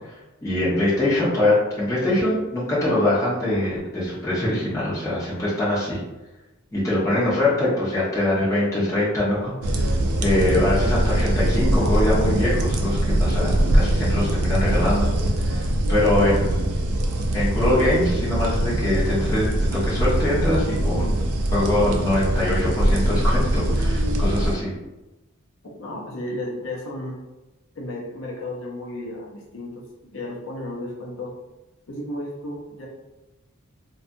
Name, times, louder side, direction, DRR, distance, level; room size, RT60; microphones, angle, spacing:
voice 1, 0.4-6.0 6.7-9.9 10.2-15.1 15.4-16.7 17.3-19.5 19.7-21.2 21.5-24.7, left 1 dB, 15° left, -9 dB, 0.7 m, -23 dB
sound 1, 9.6-24.5, right 1 dB, 85° right, 0.4 m, -22 dB
voice 2, 25.8-27.2 27.7-29.8 30.1-31.3 31.9-32.9, left 1 dB, 60° left, -2 dB, 0.6 m, -33 dB
2.7 x 2.2 x 2.6 m, 1.0 s
head